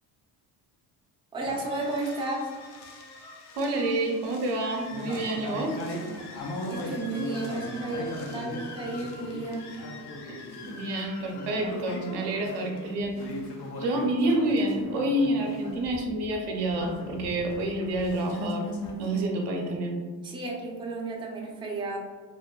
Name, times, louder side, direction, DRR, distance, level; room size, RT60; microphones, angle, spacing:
voice 1, 1.3-2.5 6.7-9.7 20.2-22.0, right 2 dB, 10° right, -2 dB, 0.5 m, -33 dB
sound 1, 1.4-19.2, left 1 dB, 60° left, 0.7 m, -39 dB
voice 2, 3.6-5.8 10.3-13.2 13.8-18.6 19.0-20.0, right 1 dB, 60° right, 1 dB, 0.6 m, -28 dB
3.0 x 2.0 x 2.3 m, 1.5 s
supercardioid pair, 70°, 45 cm